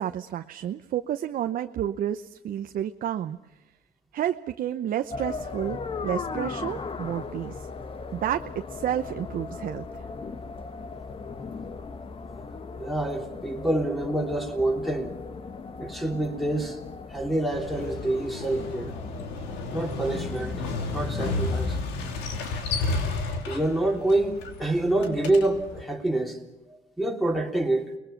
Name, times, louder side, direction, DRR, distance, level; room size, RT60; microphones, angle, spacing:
voice 1, 0.0-3.4 4.1-7.7 8.1-9.9, right 10 dB, 55° right, 0.8 m, -30 dB
sound 1, 5.1-21.6, left 4 dB, 35° left, 1.2 m, -38 dB
voice 2, 12.8-15.2 15.8-16.8 17.1-18.9 19.7-20.6 20.9-21.8 23.5-26.4 27.0-27.9, right 2 dB, ahead, 3.4 m, -26 dB
Motorcycle, 17.5-25.8, left 3 dB, 85° left, 3.1 m, -32 dB
29.5 x 21.0 x 5.9 m
cardioid pair, 110°, 17 cm